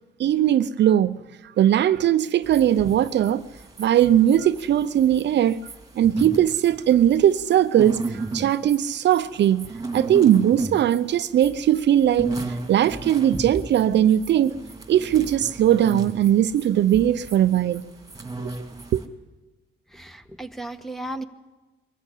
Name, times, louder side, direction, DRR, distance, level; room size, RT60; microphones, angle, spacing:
voice 1, 0.2-1.2 1.6-3.4 3.8-5.6 6.0-12.3 12.7-14.6 14.9-17.8 18.4-18.5 18.9-19.0, right 11 dB, 60° right, 0.6 m, -19 dB
sound 1, 2.4-19.1, right 3 dB, 20° right, 2.4 m, -35 dB
voice 2, 19.9-21.2, right 1 dB, ahead, 1.2 m, -35 dB
22.5 x 13.5 x 8.4 m
cardioid pair, 90°, 20 cm